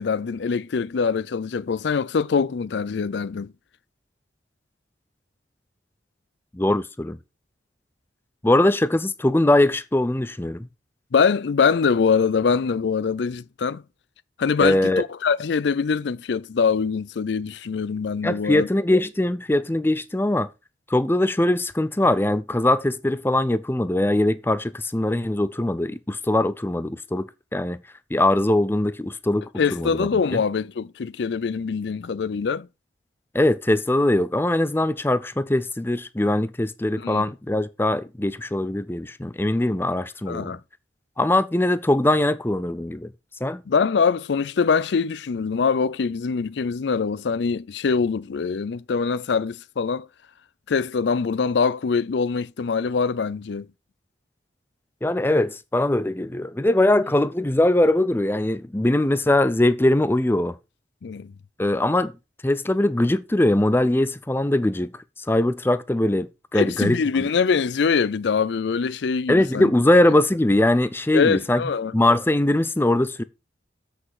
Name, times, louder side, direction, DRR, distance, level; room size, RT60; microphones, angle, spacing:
voice 1, 0.0-3.5 11.1-13.8 14.4-18.7 29.6-32.7 37.0-37.2 40.3-40.6 43.7-50.1 50.7-53.7 61.0-61.3 66.5-69.7 71.1-71.9, left 5 dB, 65° left, 0.4 m, -23 dB
voice 2, 6.5-7.2 8.4-10.7 14.6-15.0 18.2-20.5 20.9-27.8 28.1-30.4 33.3-40.6 41.2-43.1 43.4-43.6 55.0-60.6 61.6-62.1 62.4-64.9 65.3-67.0 69.3-71.6 71.9-73.2, left 1 dB, 10° left, 0.5 m, -21 dB
7.7 x 6.4 x 4.8 m
head